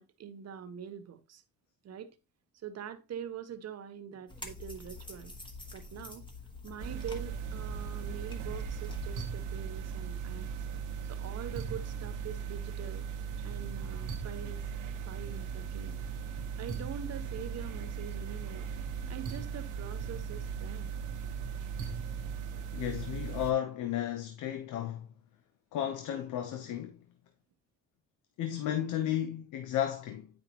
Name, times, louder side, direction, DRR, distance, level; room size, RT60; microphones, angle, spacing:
voice 1, 0.0-1.4 1.8-2.1 2.6-5.3 5.7-6.3 6.6-10.5 11.1-13.1 13.4-14.6 15.0-16.0 16.6-18.7 19.1-20.9, right 8 dB, 55° right, 1.0 m, -44 dB
sound 1, 4.3-9.3, left 3 dB, 15° left, 1.5 m, -47 dB
sound 2, 6.8-23.5, right 7 dB, 85° right, 1.2 m, -38 dB
voice 2, 22.7-25.1 25.7-27.0 28.4-30.3, left 11 dB, 85° left, 0.8 m, -33 dB
8.9 x 5.4 x 2.9 m
cardioid pair, 90°, 30 cm